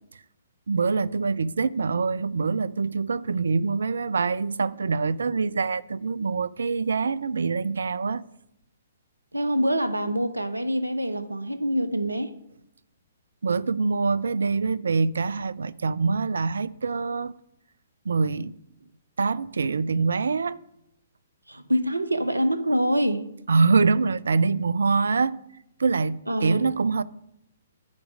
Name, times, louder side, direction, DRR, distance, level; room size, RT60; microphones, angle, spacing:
voice 1, 0.7-8.2 13.4-17.3 18.1-18.5 19.2-20.6 23.5-25.4 25.8-27.0, right 4 dB, 65° right, 0.3 m, -24 dB
voice 2, 9.3-12.3 21.5-23.2 26.3-26.6, equal, 85° right, 0.7 m, -25 dB
10.5 x 4.9 x 5.0 m
figure-of-eight pair, 125°, 0 cm